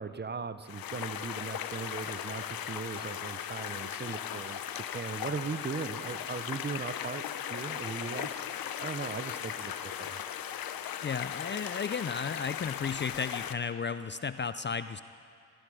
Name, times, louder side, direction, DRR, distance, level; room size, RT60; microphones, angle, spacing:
voice 1, 0.0-7.2 7.5-8.4 8.8-9.7 10.0-10.2, right 5 dB, 30° right, 12 dB, 0.7 m, -38 dB
sound 1, 0.6-13.5, left 10 dB, 75° left, 0.7 m, -38 dB
voice 2, 11.0-15.0, left 6 dB, 30° left, 13 dB, 0.4 m, -34 dB
15.0 x 14.0 x 4.9 m, 2.4 s
supercardioid pair, 50°, 36 cm